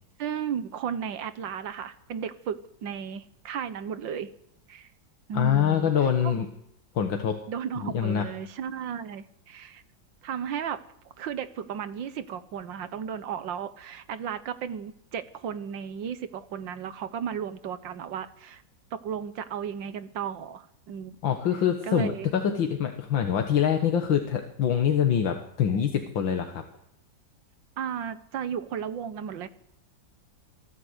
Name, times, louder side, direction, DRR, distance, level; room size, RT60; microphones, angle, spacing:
voice 1, 0.2-4.3 4.7-4.9 5.3-5.9 6.2-6.3 7.5-9.8 10.2-10.8 11.2-18.6 18.9-21.2 21.8-22.4 27.8-29.5, right 8 dB, 75° right, 13 dB, 1.8 m, -34 dB
voice 2, 5.3-6.5 7.0-7.4 7.8-8.2 21.2-26.6, left 8 dB, 85° left, 4 dB, 2.2 m, -25 dB
24.5 x 14.0 x 8.2 m, 0.77 s
omnidirectional pair, 2.0 m